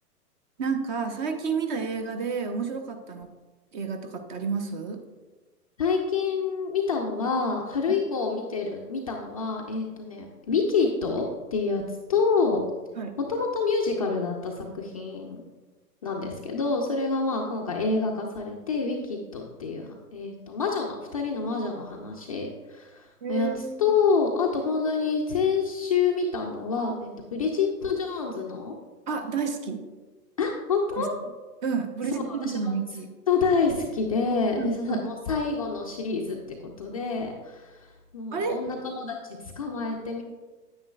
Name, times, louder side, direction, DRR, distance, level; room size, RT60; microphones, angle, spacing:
voice 1, 0.6-3.3 3.7-5.0 13.0-13.2 23.2-23.9 29.1-29.8 31.0-31.1 31.6-33.1 34.6-35.1 38.3-38.6, right 5 dB, 30° right, 7 dB, 0.7 m, -30 dB
voice 2, 5.8-12.6 13.3-15.4 16.0-28.7 30.4-31.1 32.1-32.7 33.3-40.2, left 4 dB, 25° left, -1 dB, 0.4 m, -27 dB
9.2 x 9.1 x 2.3 m, 1.3 s
hypercardioid pair, 125°, 48 cm